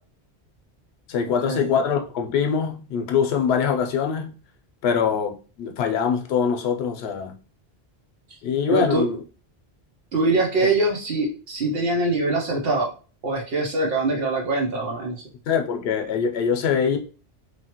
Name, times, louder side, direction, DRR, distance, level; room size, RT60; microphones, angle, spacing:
voice 1, 1.1-4.3 4.8-7.3 8.4-9.2 15.5-17.0, left 7 dB, 75° left, 0.8 m, -23 dB
voice 2, 8.7-9.1 10.1-12.9 13.2-15.2, right 2 dB, 70° right, 0.9 m, -23 dB
3.0 x 2.2 x 2.9 m
omnidirectional pair, 1.1 m